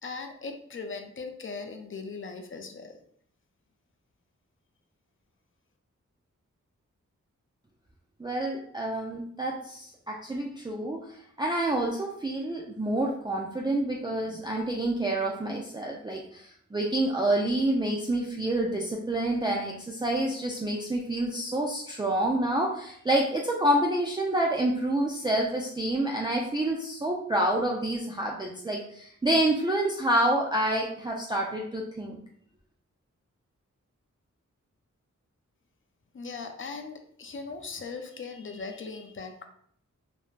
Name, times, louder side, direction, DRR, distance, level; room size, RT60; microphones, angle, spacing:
voice 1, 0.0-3.0 36.1-39.4, left 4 dB, 40° left, 6 dB, 0.5 m, -39 dB
voice 2, 8.2-32.2, right 1 dB, 15° right, -2 dB, 0.3 m, -28 dB
3.1 x 2.1 x 2.4 m, 0.65 s
cardioid pair, 45°, 31 cm